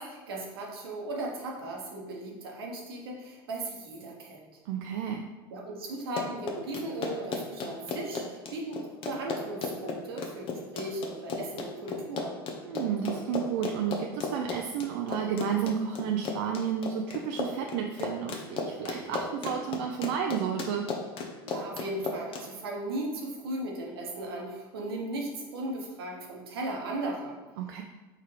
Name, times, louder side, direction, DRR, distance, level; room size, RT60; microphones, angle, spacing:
voice 1, 0.0-4.5 5.5-12.4 21.4-27.4, right 2 dB, 85° right, -1 dB, 1.0 m, -37 dB
voice 2, 4.7-5.3 12.6-20.8 27.6-27.8, right 8 dB, 70° right, 2 dB, 0.4 m, -31 dB
Run, 6.0-22.4, left 4 dB, 50° left, 0.7 m, -35 dB
4.2 x 3.8 x 3.2 m, 1.2 s
hypercardioid pair, 90°, 12 cm